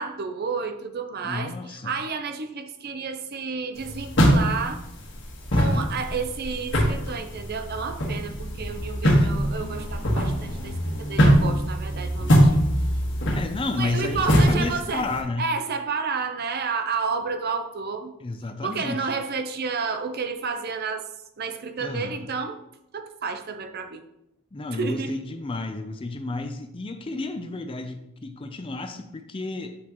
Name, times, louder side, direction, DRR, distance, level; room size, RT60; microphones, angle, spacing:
voice 1, 0.0-4.8 5.5-12.6 13.8-15.1 15.4-18.1 18.6-21.1 21.4-22.6 22.9-24.0 24.7-25.1, right 5 dB, 45° right, 7 dB, 0.6 m, -31 dB
voice 2, 1.2-2.0 5.5-5.9 9.1-9.3 13.3-15.5 18.2-19.1 21.8-22.3 24.5-29.8, left 2 dB, 25° left, 8 dB, 0.4 m, -31 dB
sound 1, 3.8-15.2, equal, 55° left, 1.5 m, -23 dB
7.9 x 6.0 x 3.0 m, 0.84 s
head